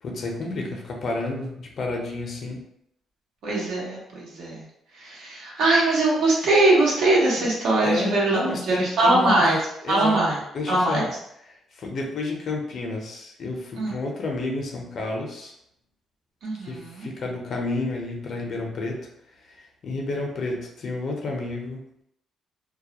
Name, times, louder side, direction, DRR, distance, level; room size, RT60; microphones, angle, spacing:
voice 1, 0.0-2.6 7.3-7.4 7.8-9.4 9.8-10.2 10.5-11.1 11.7-15.5 16.6-19.1 19.5-21.8, left 2 dB, 55° left, 0 dB, 0.6 m, -30 dB
voice 2, 3.4-4.6 5.0-9.6 9.9-10.4 10.7-11.1 13.8-13.9 16.4-17.1, right 2 dB, 80° right, -4 dB, 0.9 m, -21 dB
2.3 x 2.1 x 2.8 m, 0.75 s
cardioid pair, 90°, 0 cm